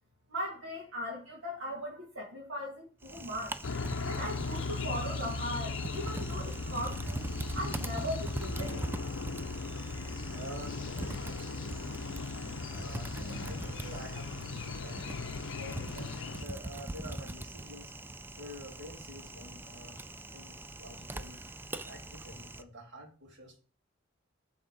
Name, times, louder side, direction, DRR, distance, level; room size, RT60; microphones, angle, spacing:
voice 1, 0.3-3.6 4.0-7.3 7.5-8.9, equal, 80° right, -3 dB, 1.7 m, -38 dB
Typing, 3.0-22.6, right 2 dB, 10° right, 0.3 m, -42 dB
sound 1, 3.6-16.4, left 3 dB, 70° left, 0.5 m, -38 dB
voice 2, 10.3-12.0 12.7-17.9 18.3-20.0 20.3-21.4 21.8-23.6, equal, 60° right, 0 dB, 2.4 m, -48 dB
8.0 x 3.6 x 6.5 m, 0.39 s
head